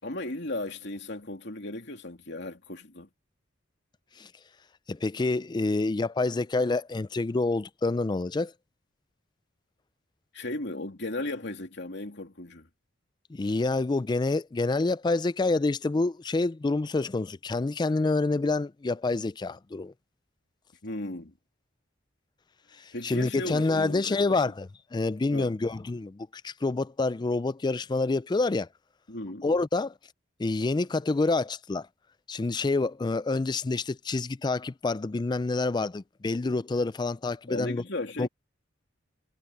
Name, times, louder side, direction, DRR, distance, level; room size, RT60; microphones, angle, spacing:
voice 1, 0.0-3.1 10.3-12.7 20.8-21.3 22.9-24.2 25.3-25.5 29.1-29.5 37.5-38.3, left 1 dB, 60° left, 3.0 m, -36 dB
voice 2, 4.9-8.5 13.3-19.9 22.8-28.7 29.4-29.9 30.4-31.9 32.3-37.8 38.2-38.3, left 3 dB, 20° left, 0.3 m, -27 dB
head